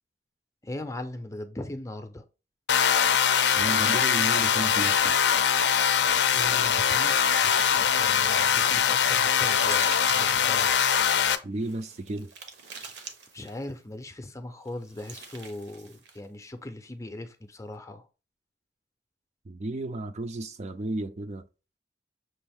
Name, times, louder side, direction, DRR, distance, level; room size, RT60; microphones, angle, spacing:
voice 1, 0.6-2.2 6.3-7.1 7.4-10.7 13.3-18.1, left 1 dB, 15° left, 0.5 m, -39 dB
sound 1, 2.7-11.3, left 8 dB, 70° left, 0.5 m, -22 dB
voice 2, 3.6-5.2 11.4-12.3 19.4-21.4, right 2 dB, 40° right, 0.4 m, -33 dB
sound 2, 6.4-8.2 8.7-10.7 11.6-13.7 14.7-16.2, right 5 dB, 70° right, 0.9 m, -44 dB
6.1 x 2.5 x 3.5 m
head